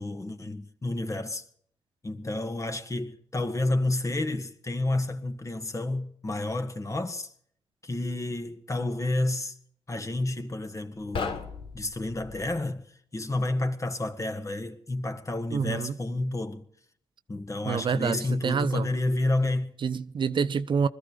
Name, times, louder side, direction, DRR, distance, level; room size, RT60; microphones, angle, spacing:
voice 1, 0.0-1.4 2.0-7.3 7.8-9.5 9.9-11.5 11.7-12.9 13.1-16.7 17.3-19.8, left 2 dB, 35° left, 1.8 m, -30 dB
sound 1, 11.0-12.6, left 5 dB, 65° left, 1.5 m, -36 dB
voice 2, 15.5-15.9 17.6-18.9 19.8-20.9, right 6 dB, 55° right, 0.7 m, -27 dB
20.5 x 13.5 x 5.1 m
supercardioid pair, 45°, 10 cm